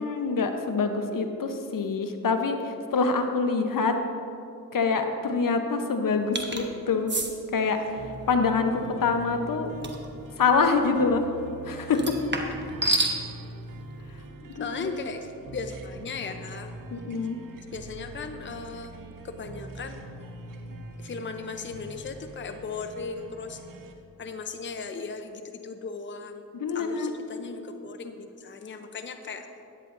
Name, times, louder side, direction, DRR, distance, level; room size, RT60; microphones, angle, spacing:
voice 1, 0.0-3.9 4.7-7.1 7.5-9.7 10.4-11.2 11.6-12.1 14.6-14.9 16.9-17.4 26.6-27.1, left 4 dB, 65° left, 6 dB, 0.9 m, -25 dB
sound 1, 6.4-6.6 7.1-7.3 9.8-10.1 11.9-13.2, right 2 dB, 30° right, 1.2 m, -27 dB
sound 2, 7.6-23.9, right 2 dB, 65° right, 0.9 m, -43 dB
voice 2, 14.4-16.7 17.7-18.9 19.2-20.0 21.0-23.6 24.2-26.4 26.7-29.5, left 4 dB, 35° left, 6 dB, 0.6 m, -37 dB
13.5 x 9.8 x 2.6 m, 2.6 s
cardioid pair, 55°, 35 cm